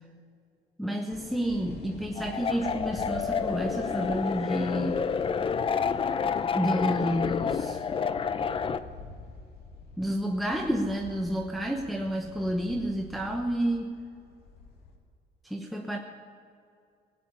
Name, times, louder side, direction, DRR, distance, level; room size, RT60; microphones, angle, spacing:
voice 1, 0.8-5.0 6.5-7.8 10.0-14.0 15.4-16.0, equal, ahead, 1 dB, 1.0 m, -30 dB
sound 1, 1.1-15.0, left 3 dB, 70° left, 2.4 m, -46 dB
sound 2, 2.2-8.8, left 6 dB, 30° left, 0.6 m, -29 dB
17.0 x 9.3 x 8.7 m, 2.4 s
cardioid pair, 110°, 17 cm